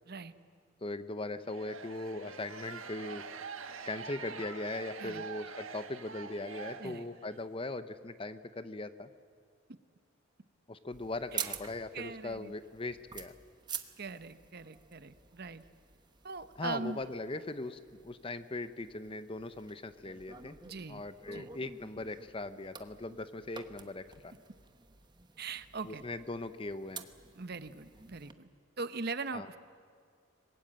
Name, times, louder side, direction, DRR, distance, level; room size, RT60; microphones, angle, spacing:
voice 1, 0.8-3.2 3.8-9.1 10.7-13.3 16.6-20.6 20.9-24.3 25.8-27.1 29.3-29.5, left 2 dB, 25° left, 12 dB, 0.8 m, -40 dB
sound 1, 1.5-7.4, right 5 dB, 90° right, 1.5 m, -45 dB
sound 2, 10.9-28.3, right 6 dB, 20° right, 1.0 m, -48 dB
voice 2, 11.9-12.5 14.0-15.6 16.2-17.0 20.6-21.0 21.3-21.5 25.4-26.0 27.4-28.5 28.8-29.6, right 4 dB, 50° right, 12 dB, 0.9 m, -41 dB
25.5 x 21.0 x 8.8 m, 2.2 s
head